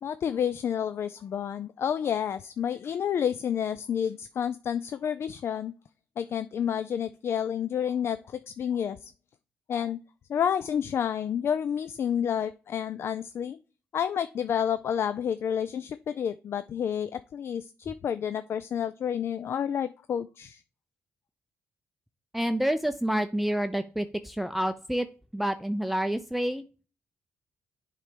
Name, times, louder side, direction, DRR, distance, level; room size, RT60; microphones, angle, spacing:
voice 1, 0.0-5.7 6.2-9.1 9.7-10.0 10.3-13.6 13.9-20.6, left 8 dB, 55° left, 13 dB, 0.3 m, -30 dB
voice 2, 22.3-25.1 25.3-26.6, right 1 dB, ahead, 9 dB, 0.5 m, -28 dB
7.4 x 3.2 x 5.0 m, 0.35 s
supercardioid pair, 60°, 5 cm